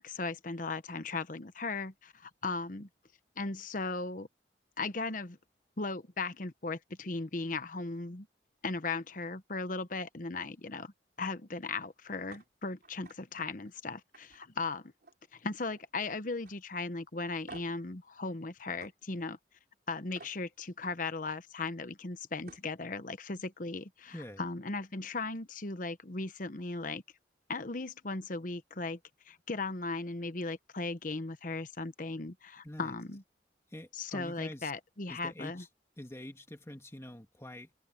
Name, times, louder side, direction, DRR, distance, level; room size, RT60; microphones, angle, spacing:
voice 1, 0.0-2.9 3.4-4.3 4.8-5.4 5.8-8.3 8.6-10.9 11.2-14.9 15.3-19.4 19.9-27.0 27.5-29.0 29.3-33.2 33.9-35.6, left 3 dB, 45° left, 1.0 m, -37 dB
sound 1, 12.3-12.4 12.8-13.2 13.6-13.7 14.1-15.3 15.6-16.0 16.4-16.6 17.5-17.8 18.8-18.9 20.1-20.4 22.0-22.1 22.4-22.7, right 3 dB, 55° right, 5.6 m, -52 dB
voice 2, 24.1-24.4 32.6-32.9 33.7-34.7 35.1-35.7 36.0-37.7, left 1 dB, 15° left, 2.2 m, -45 dB
head